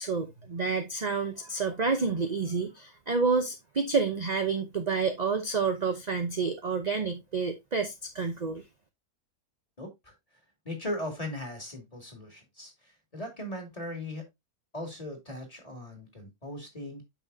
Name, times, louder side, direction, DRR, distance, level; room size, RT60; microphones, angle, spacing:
voice 1, 0.0-8.6, right 4 dB, 40° right, 0.7 m, -29 dB
voice 2, 9.8-10.1 10.6-14.3 14.7-17.0, left 1 dB, 20° left, 2.5 m, -38 dB
8.6 x 6.1 x 2.7 m
omnidirectional pair, 1.7 m